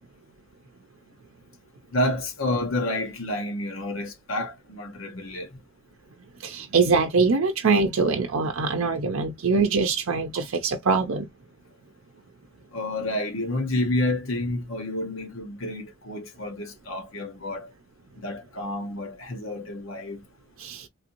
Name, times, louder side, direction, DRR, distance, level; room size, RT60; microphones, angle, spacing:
voice 1, 1.9-5.6 12.7-17.7 18.2-20.2, left 1 dB, 80° left, 1.0 m, -29 dB
voice 2, 6.4-11.3 20.6-20.9, right 4 dB, 85° right, 0.5 m, -23 dB
3.3 x 2.6 x 2.9 m
head